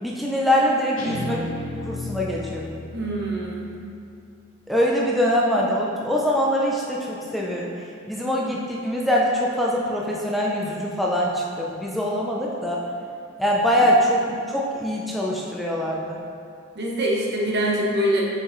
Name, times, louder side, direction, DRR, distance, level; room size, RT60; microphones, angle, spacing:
voice 1, 0.0-1.4 1.7-2.7 4.7-7.7 8.1-12.8 13.4-16.2, equal, ahead, -4 dB, 0.5 m, -23 dB
Guitar, 1.0-4.2, left 1 dB, 85° left, 1.4 m, -34 dB
voice 2, 2.9-3.7 16.7-18.2, right 1 dB, 55° right, -3 dB, 1.1 m, -24 dB
7.4 x 5.6 x 3.1 m, 2.4 s
head